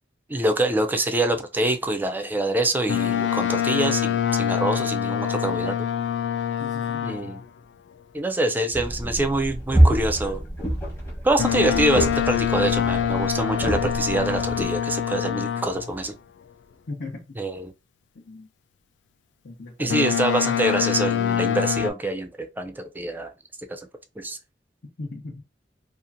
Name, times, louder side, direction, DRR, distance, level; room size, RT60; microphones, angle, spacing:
voice 1, 0.3-5.8 7.0-7.4 8.1-10.4 11.2-16.1 17.4-17.7 19.8-23.3 23.7-23.8 24.2-24.4, right 2 dB, 10° right, 0.3 m, -25 dB
Boat Water vehicle, 2.9-7.4 11.4-15.9 19.9-21.9, left 9 dB, 80° left, 0.3 m, -25 dB
voice 2, 6.6-7.0 16.9-17.3 18.1-18.5 19.4-20.1 25.0-25.4, left 2 dB, 60° left, 0.7 m, -37 dB
sound 1, 8.7-14.6, right 1 dB, 15° left, 1.0 m, -25 dB
2.8 x 2.4 x 2.5 m
head